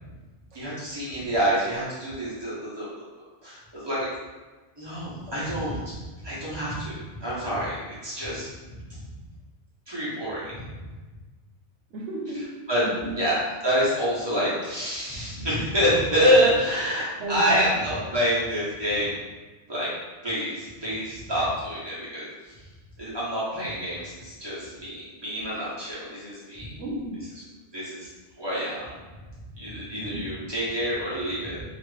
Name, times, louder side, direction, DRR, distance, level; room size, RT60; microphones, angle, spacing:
voice 1, 0.5-4.1 4.8-6.0 6.2-8.5 8.9-9.0 9.9-10.8 12.3-12.8 13.1-13.4 13.6-19.2 19.7-19.9 20.2-22.5 23.0-26.7 27.7-28.1 28.4-29.0 29.6-31.6, equal, 25° right, -9 dB, 1.0 m, -27 dB
voice 2, 11.9-12.5 12.8-13.1 17.2-17.7 26.8-27.2 29.9-30.2, right 2 dB, 85° right, 0 dB, 1.0 m, -32 dB
2.9 x 2.5 x 3.2 m, 1.2 s
omnidirectional pair, 1.2 m